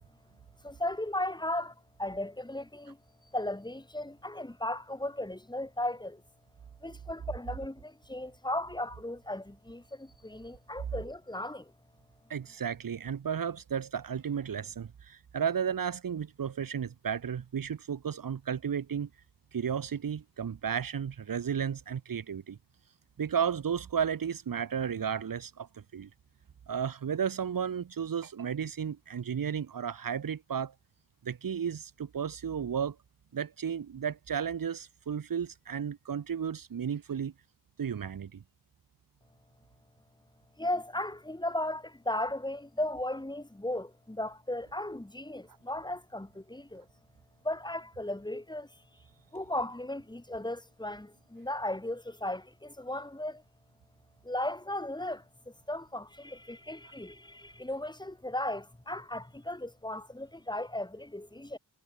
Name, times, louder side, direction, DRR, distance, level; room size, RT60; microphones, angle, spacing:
voice 1, 0.6-3.0 3.3-6.2 6.8-11.7 40.6-46.9 47.4-48.8 49.3-53.4 54.2-61.6, left 1 dB, 10° left, 3.9 m, -36 dB
voice 2, 12.3-19.1 19.5-22.6 23.2-26.1 26.7-30.7 31.2-33.0 33.3-37.3 37.8-38.4, right 7 dB, 70° right, 2.0 m, -33 dB
wide cardioid pair, 90°, 35 cm